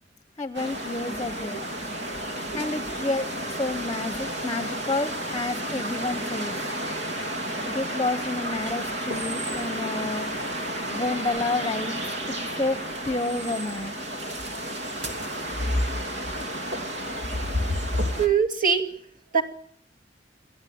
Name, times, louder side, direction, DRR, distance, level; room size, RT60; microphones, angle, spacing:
voice 1, 0.4-1.6 2.5-3.2 3.6-6.5 7.7-10.3 10.9-12.0 12.6-12.8 13.0-14.0, left 2 dB, 20° left, 10 dB, 1.0 m, -29 dB
sound 1, 0.5-18.3, equal, 65° right, 3.0 m, -31 dB
voice 2, 2.5-3.0 5.8-5.9 9.0-9.1 9.8-10.0 17.5-17.7 18.2-18.9 19.3-19.4, right 6 dB, 50° right, 2 dB, 2.6 m, -25 dB
28.0 x 13.0 x 9.5 m, 0.65 s
head